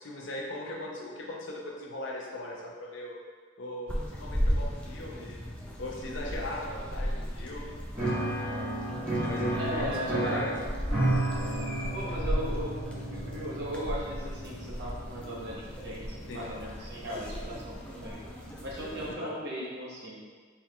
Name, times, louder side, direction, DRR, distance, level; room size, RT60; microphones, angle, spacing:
voice 1, 0.0-3.2 3.6-5.4 5.8-7.8 9.2-10.6 12.1-12.5 16.3-16.5 19.1-19.3, left 1 dB, 60° left, -2 dB, 0.6 m, -39 dB
sound 1, 3.9-19.1, equal, 5° left, 0.3 m, -36 dB
Piano, 7.9-16.4, right 1 dB, 10° right, 1.1 m, -33 dB
voice 2, 9.6-10.5 11.9-12.8 13.1-18.2 18.6-20.2, equal, 55° right, -5 dB, 0.8 m, -37 dB
4.4 x 3.4 x 2.3 m, 1.5 s
head